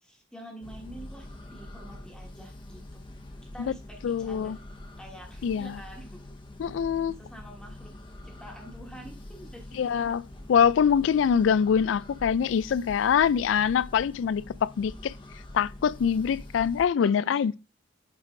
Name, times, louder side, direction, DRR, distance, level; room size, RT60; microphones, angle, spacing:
voice 1, 0.0-3.0 3.4-4.6 5.0-6.1 7.2-7.9 8.2-9.9 17.0-17.6, right 1 dB, 5° left, 1.3 m, -47 dB
sound 1, 0.6-16.9, left 1 dB, 25° left, 0.9 m, -45 dB
voice 2, 4.0-4.6 5.4-5.8 6.6-7.1 9.7-10.2 10.5-15.1 15.5-17.6, left 7 dB, 85° left, 0.3 m, -24 dB
7.5 x 3.2 x 4.9 m
head